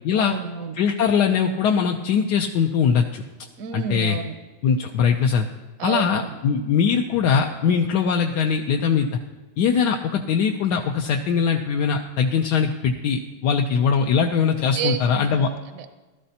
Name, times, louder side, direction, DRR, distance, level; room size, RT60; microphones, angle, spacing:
voice 1, 0.1-0.8 3.6-4.3 5.8-6.4 14.7-16.0, right 7 dB, 65° right, 8 dB, 1.0 m, -30 dB
voice 2, 0.7-3.2 3.7-4.2 4.6-5.5 5.8-9.1 9.6-15.5, left 6 dB, 75° left, 3 dB, 1.2 m, -21 dB
16.0 x 12.5 x 2.8 m, 1.2 s
omnidirectional pair, 1.9 m